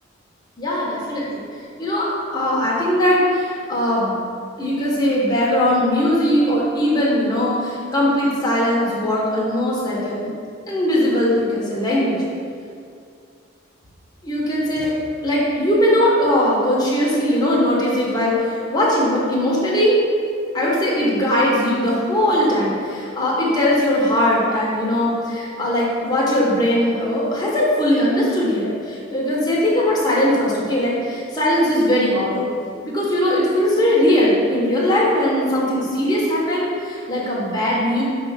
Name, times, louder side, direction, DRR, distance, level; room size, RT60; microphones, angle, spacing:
voice 1, 0.6-1.4 1.8-4.2 4.6-10.3 10.7-12.2 14.2-14.9 15.2-20.0 20.5-32.5 32.8-38.0, left 1 dB, 20° left, -6 dB, 1.2 m, -20 dB
5.4 x 3.5 x 5.7 m, 2.3 s
head